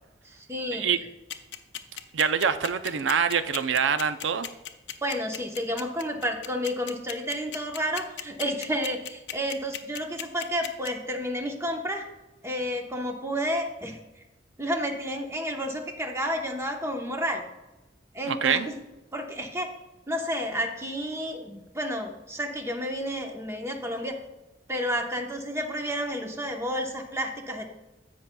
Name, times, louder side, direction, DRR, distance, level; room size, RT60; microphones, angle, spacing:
voice 1, 0.2-1.1 5.0-12.1 12.4-14.0 14.6-17.4 18.1-18.8 19.1-19.7 20.1-24.2 24.7-27.6, equal, 15° right, 3 dB, 0.9 m, -31 dB
sound 1, 1.3-10.9, left 10 dB, 70° left, 0.6 m, -35 dB
voice 2, 2.1-4.5 18.3-18.7, right 7 dB, 85° right, 11 dB, 0.5 m, -25 dB
15.5 x 5.7 x 2.2 m, 1.1 s
head